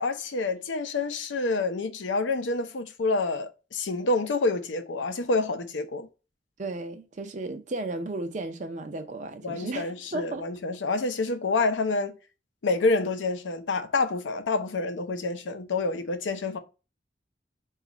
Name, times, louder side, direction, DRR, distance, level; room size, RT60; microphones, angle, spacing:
voice 1, 0.0-6.1 9.4-12.1 12.6-16.6, left 3 dB, 90° left, 0.6 m, -28 dB
voice 2, 6.6-10.4, right 2 dB, 40° right, 0.5 m, -34 dB
4.0 x 2.4 x 4.7 m
head